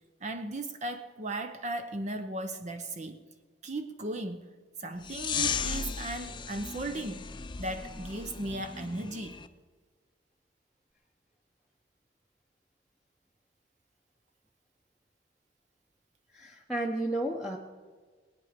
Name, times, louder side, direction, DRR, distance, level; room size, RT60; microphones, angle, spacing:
voice 1, 0.2-3.2 3.6-4.5 4.8-7.3 7.6-9.5, right 2 dB, 40° right, 0.8 m, -36 dB
sound 1, 5.0-9.5, left 6 dB, 25° left, 0.6 m, -36 dB
voice 2, 16.3-17.6, right 1 dB, 5° right, 0.9 m, -32 dB
20.0 x 9.9 x 5.1 m
head